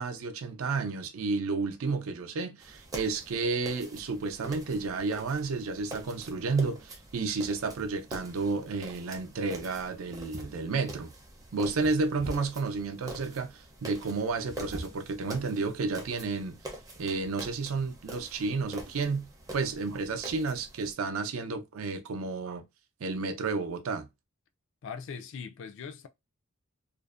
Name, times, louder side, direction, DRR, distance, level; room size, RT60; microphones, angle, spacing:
voice 1, 0.0-11.1 11.5-16.6 17.0-19.3 19.5-22.6 23.0-24.1, right 4 dB, 75° right, 0.5 m, -31 dB
sound 1, 2.6-20.9, right 1 dB, 15° right, 0.5 m, -46 dB
sound 2, 10.0-10.9 11.8-12.7 14.3-15.1 15.6-15.8 16.3-16.4, right 1 dB, 45° right, 0.8 m, -43 dB
voice 2, 24.8-26.1, left 6 dB, 60° left, 0.4 m, -40 dB
2.5 x 2.1 x 2.4 m
head